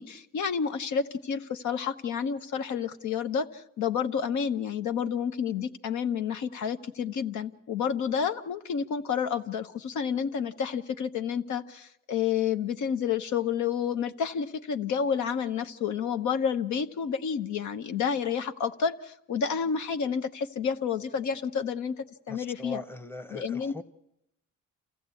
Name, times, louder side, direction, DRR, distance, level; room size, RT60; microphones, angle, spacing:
voice 1, 0.0-22.8 23.3-23.8, left 7 dB, 70° left, 8 dB, 0.9 m, -30 dB
voice 2, 22.3-23.8, left 2 dB, 5° left, 10 dB, 0.9 m, -41 dB
27.5 x 15.0 x 8.3 m, 0.84 s
cardioid pair, 90°, 30 cm